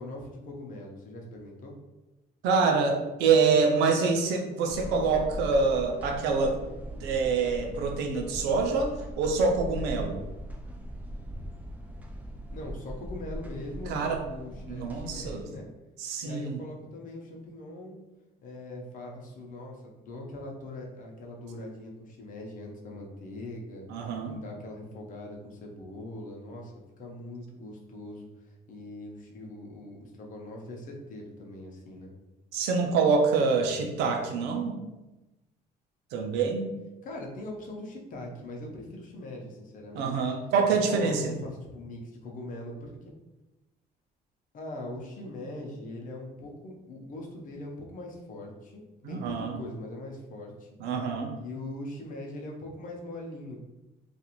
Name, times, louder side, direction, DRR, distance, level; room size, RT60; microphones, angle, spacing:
voice 1, 0.0-1.7 12.5-15.7 16.2-18.0 18.4-23.9 24.3-32.1 37.0-40.3 40.6-43.2 44.5-50.7 51.4-53.6, left 1 dB, 50° left, 0 dB, 0.7 m, -41 dB
voice 2, 2.4-6.6 7.0-10.2 13.9-14.2 14.7-15.4 16.0-16.6 23.9-24.4 32.5-34.8 36.1-36.7 39.9-41.3 49.0-49.6 50.8-51.3, right 4 dB, 90° right, 3 dB, 0.5 m, -26 dB
sound 1, 4.7-15.4, equal, 10° right, 0.4 m, -40 dB
2.5 x 2.4 x 2.9 m, 1.0 s
cardioid pair, 110°, 17 cm